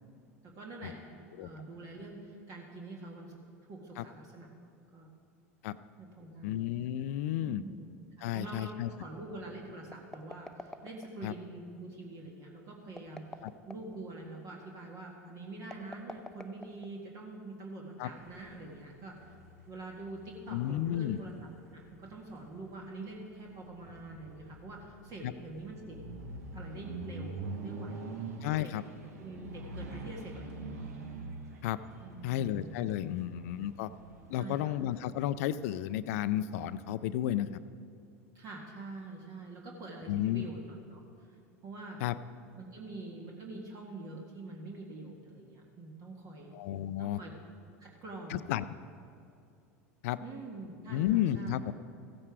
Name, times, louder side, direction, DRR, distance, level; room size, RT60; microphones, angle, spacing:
voice 1, 0.4-3.4 3.7-4.5 4.9-5.1 6.0-6.6 7.4-7.9 8.2-19.3 19.7-21.3 21.7-26.0 26.5-28.2 28.6-28.7 29.2-30.8 32.0-32.7 33.1-33.3 34.4-34.8 38.3-41.4 41.6-42.0 42.5-46.5 47.0-47.3 47.8-48.4 50.2-51.6, right 2 dB, 45° right, -1 dB, 1.7 m, -45 dB
voice 2, 6.4-7.6 8.2-8.9 11.2-11.3 13.4-13.5 18.0-18.1 20.5-21.2 25.2-25.3 28.4-28.8 31.6-31.8 32.2-33.9 34.3-37.5 40.1-40.5 42.0-42.1 46.5-47.2 48.3-48.6 50.0-50.2 50.9-51.7, left 12 dB, 70° left, 14 dB, 0.4 m, -32 dB
sound 1, 9.9-11.3 12.9-14.0 15.6-17.2, left 1 dB, 5° left, 0.7 m, -47 dB
sound 2, 18.1-35.3, right 3 dB, 80° right, 1.3 m, -46 dB
15.0 x 8.8 x 4.8 m, 2.5 s
hypercardioid pair, 85°, 8 cm